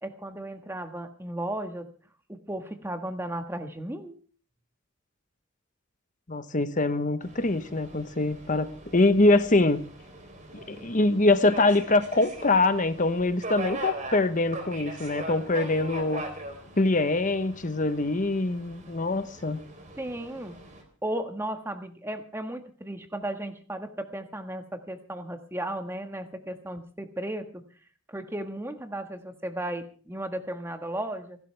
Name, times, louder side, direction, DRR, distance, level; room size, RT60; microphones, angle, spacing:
voice 1, 0.0-1.9 2.3-4.2 20.0-20.6 21.0-27.6 28.1-31.4, right 1 dB, 10° right, 1.5 m, -35 dB
voice 2, 6.3-9.8 10.5-16.2 16.8-19.6, left 2 dB, 40° left, 1.1 m, -24 dB
Subway metro underground, 7.2-20.8, right 2 dB, 35° right, 3.7 m, -41 dB
28.5 x 12.0 x 3.4 m
head